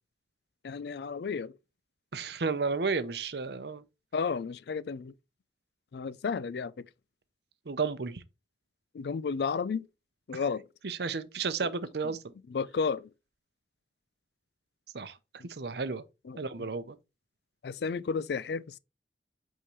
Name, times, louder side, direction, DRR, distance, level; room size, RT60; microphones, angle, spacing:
voice 1, 0.6-1.5 4.1-5.1 5.9-6.7 8.9-9.9 10.3-10.6 11.6-11.7 12.5-13.1 15.4-15.5 16.3-16.4 17.6-18.8, left 5 dB, 65° left, 0.4 m, -32 dB
voice 2, 2.1-3.8 7.7-8.2 10.3-10.4 10.8-12.2 14.9-16.0 16.4-17.0, right 4 dB, 70° right, 0.7 m, -33 dB
8.3 x 3.7 x 3.1 m
head